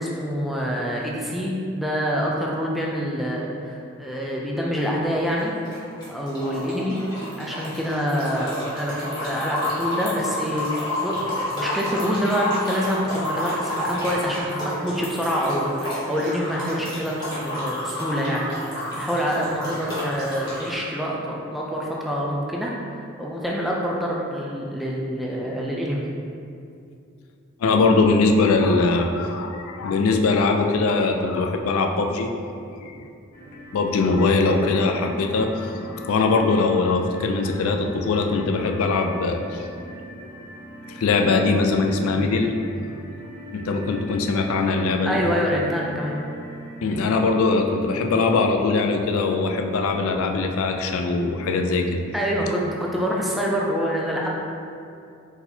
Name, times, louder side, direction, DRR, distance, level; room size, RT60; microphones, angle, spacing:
voice 1, 0.0-5.5 6.1-7.0 7.4-17.2 17.4-26.0 45.1-46.2 52.1-54.3, equal, ahead, -4 dB, 0.4 m, -26 dB
sound 1, 5.0-5.4 5.6-20.7, left 1 dB, 20° left, 1.2 m, -30 dB
voice 2, 27.6-32.3 32.8-33.1 33.7-39.6 40.9-42.5 43.5-45.2 46.8-52.0, left 3 dB, 80° left, 4 dB, 0.4 m, -21 dB
sound 2, 33.3-47.3, right 1 dB, 40° left, 1.2 m, -41 dB
4.3 x 4.0 x 2.7 m, 2.5 s
head